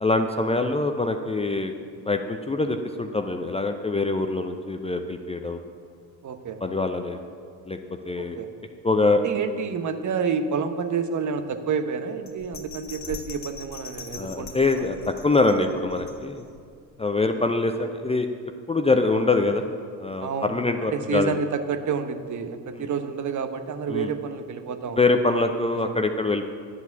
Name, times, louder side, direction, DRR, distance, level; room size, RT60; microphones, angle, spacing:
voice 1, 0.0-1.7 2.0-5.6 6.6-7.2 7.7-7.8 8.0-8.4 8.8-9.2 13.1-13.2 14.2-16.4 17.0-18.3 18.7-19.6 20.0-21.4 22.7-22.9 23.9-24.1 25.0-26.5, left 3 dB, 15° left, 6 dB, 0.6 m, -24 dB
voice 2, 6.2-6.6 8.2-8.5 9.2-14.9 20.2-20.6 20.9-25.0 25.2-25.4 25.8-25.9, right 6 dB, 35° right, 9 dB, 1.0 m, -29 dB
Bell, 12.3-16.6 17.0-17.1, left 4 dB, 35° left, 1.6 m, -41 dB
11.0 x 8.1 x 7.2 m, 2.2 s
figure-of-eight pair, 50°, 48 cm